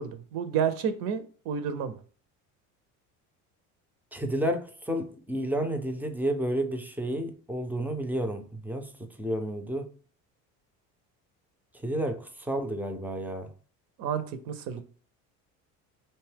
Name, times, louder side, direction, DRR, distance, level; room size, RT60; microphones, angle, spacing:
voice 1, 0.0-2.0 14.0-14.8, right 7 dB, 60° right, 0.5 m, -30 dB
voice 2, 4.1-9.9 11.8-13.5, right 1 dB, 5° right, 0.4 m, -31 dB
2.6 x 2.2 x 3.2 m
supercardioid pair, 80°, 39 cm